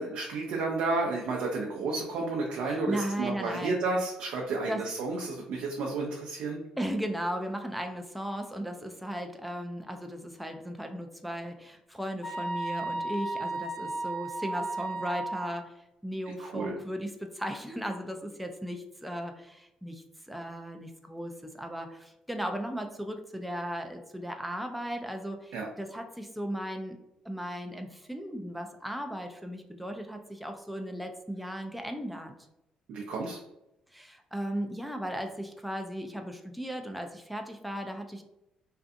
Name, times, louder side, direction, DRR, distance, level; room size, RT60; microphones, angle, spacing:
voice 1, 0.0-6.6 16.4-16.8 25.5-25.7 32.9-33.4, right 3 dB, 80° right, 0 dB, 0.4 m, -31 dB
voice 2, 2.7-3.7 4.7-4.8 6.8-15.7 16.0-27.0 27.2-32.3 33.9-38.2, equal, ahead, 4 dB, 0.3 m, -36 dB
sound 1, 12.2-15.5, right 2 dB, 40° left, 1.2 m, -34 dB
2.5 x 2.3 x 2.5 m, 0.89 s
cardioid pair, 100°, 2 cm